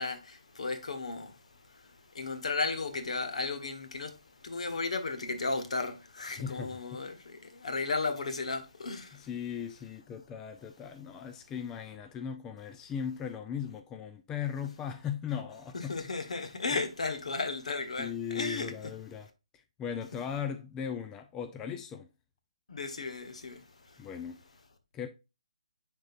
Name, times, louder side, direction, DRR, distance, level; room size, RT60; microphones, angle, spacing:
voice 1, 0.0-1.4 1.7-9.3 15.7-18.7 22.7-24.0, left 3 dB, 65° left, 1.4 m, -35 dB
voice 2, 6.3-7.0 9.1-16.0 16.7-16.8 18.0-19.3 19.5-22.1 24.0-24.4 24.9-25.1, left 8 dB, 15° left, 0.4 m, -38 dB
10.5 x 3.8 x 2.6 m
figure-of-eight pair, 150°, 4 cm